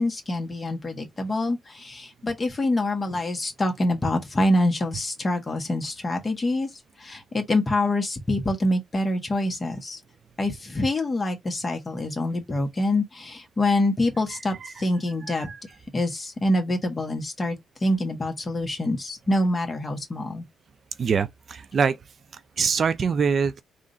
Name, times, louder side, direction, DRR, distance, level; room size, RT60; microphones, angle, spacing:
voice 1, 0.0-6.7 7.0-10.0 10.4-15.5 15.9-20.4, left 1 dB, 25° left, 1.4 m, -25 dB
voice 2, 14.3-14.7 15.3-15.6 21.0-22.0 22.6-23.6, right 6 dB, 50° right, 0.4 m, -24 dB
3.7 x 2.5 x 4.0 m
cardioid pair, 90°, 0 cm